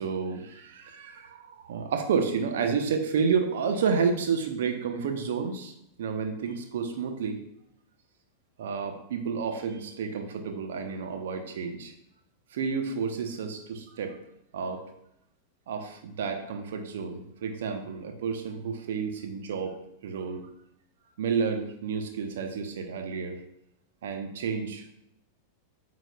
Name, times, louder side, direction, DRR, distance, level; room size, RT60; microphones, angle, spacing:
voice 1, 0.0-5.7 6.0-7.4 8.6-11.9 12.5-14.2 14.5-14.8 15.7-19.8 20.0-20.5 21.2-23.4 24.0-24.9, right 6 dB, 60° right, 5 dB, 0.9 m, -30 dB
9.0 x 6.2 x 2.4 m, 0.79 s
figure-of-eight pair, 90°, 0 cm